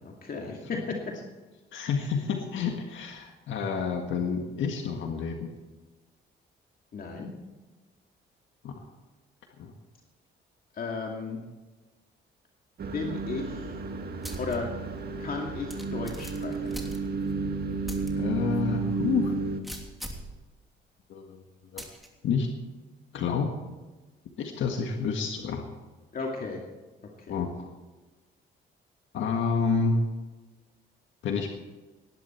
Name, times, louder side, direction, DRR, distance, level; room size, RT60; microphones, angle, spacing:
voice 1, 0.0-0.8 6.9-7.3 10.7-11.4 12.8-13.7 14.4-14.7 15.2-16.9 26.1-26.6 27.2-27.4, left 4 dB, 45° left, 0 dB, 2.4 m, -35 dB
voice 2, 1.7-5.5 8.6-8.9 9.6-9.7 18.1-19.3 21.1-21.4 21.7-21.8 22.2-22.5 23.1-23.5 24.4-25.6 27.3-27.7 29.1-30.0 31.2-31.6, left 5 dB, 75° left, 3 dB, 1.7 m, -29 dB
sound 1, 12.8-19.6, right 3 dB, 50° right, 1.8 m, -32 dB
sound 2, 14.2-14.6 15.0-15.1 15.7-17.4 17.9-18.1 18.5-18.6 19.6-20.3 21.8-22.1, equal, ahead, 2.9 m, -40 dB
18.5 x 11.5 x 4.5 m, 1.2 s
cardioid pair, 90°, 20 cm